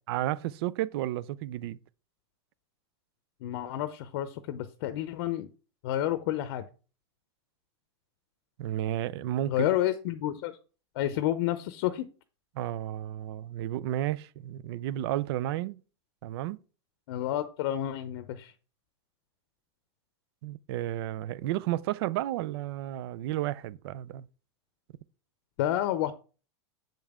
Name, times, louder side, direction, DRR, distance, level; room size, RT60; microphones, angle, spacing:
voice 1, 0.1-1.8 8.6-9.7 12.5-15.8 16.2-16.6 20.4-24.3, right 13 dB, 60° right, 0.4 m, -32 dB
voice 2, 3.4-5.5 5.8-6.6 9.5-10.5 10.9-12.1 17.1-18.5 25.6-26.1, left 12 dB, 60° left, 0.7 m, -30 dB
7.4 x 5.3 x 3.6 m
supercardioid pair, 135°, 14 cm